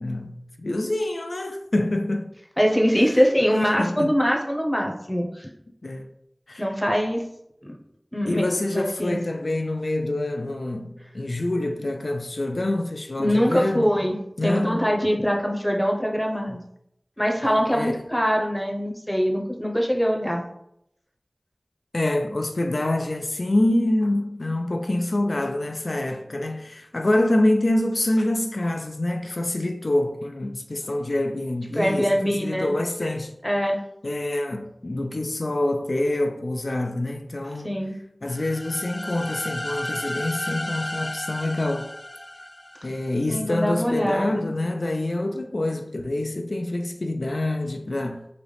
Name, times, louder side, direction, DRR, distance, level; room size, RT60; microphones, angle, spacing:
voice 1, 0.0-2.3 3.8-4.1 5.8-6.1 6.5-6.7 8.3-13.9 14.4-14.8 16.5-16.6 17.4-18.0 21.9-33.4 34.0-37.7 38.2-41.9 42.8-48.3, left 1 dB, 75° left, 0.3 m, -26 dB
voice 2, 2.6-5.5 6.6-7.2 7.6-7.7 8.1-8.5 8.7-9.2 13.2-16.6 17.2-20.4 31.7-32.7 33.4-33.8 37.6-37.9 43.3-44.4, equal, 5° left, 0.7 m, -23 dB
sound 1, 38.3-43.1, left 1 dB, 55° left, 0.8 m, -33 dB
3.9 x 2.9 x 3.3 m
wide cardioid pair, 45°, 0 cm